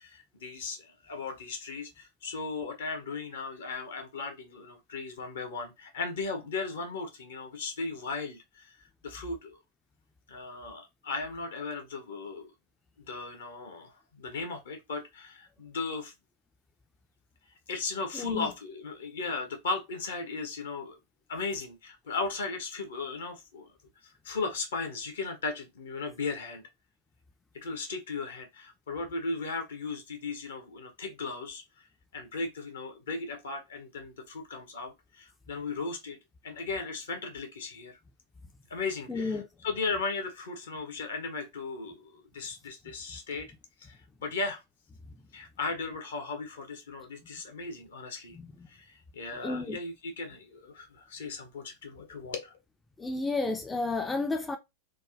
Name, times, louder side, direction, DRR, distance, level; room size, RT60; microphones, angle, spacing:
voice 1, 0.0-9.6 10.3-12.5 13.1-16.1 17.7-21.0 21.3-23.7 24.0-26.6 27.5-31.9 32.1-36.2 36.4-38.0 38.7-43.5 43.8-44.6 45.3-48.4 48.7-52.6, left 4 dB, 65° left, 0.8 m, -36 dB
voice 2, 18.1-18.5 39.1-39.5 48.4-48.5 49.4-49.8 53.0-54.6, left 3 dB, 10° left, 0.3 m, -31 dB
3.4 x 2.1 x 2.4 m
figure-of-eight pair, 90°, 0 cm